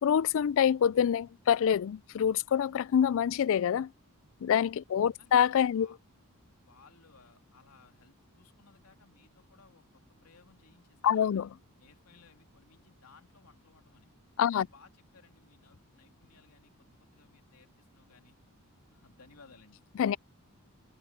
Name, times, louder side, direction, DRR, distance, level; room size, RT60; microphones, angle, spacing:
voice 1, 0.0-3.9 4.4-5.9 11.0-11.5 14.4-14.7 20.0-20.2, left 8 dB, 60° left, 0.3 m, -26 dB
voice 2, 4.9-5.4 5.7-6.0 6.6-11.5 11.8-14.1 14.5-18.4 18.9-19.8, left 4 dB, 80° left, 2.9 m, -61 dB
head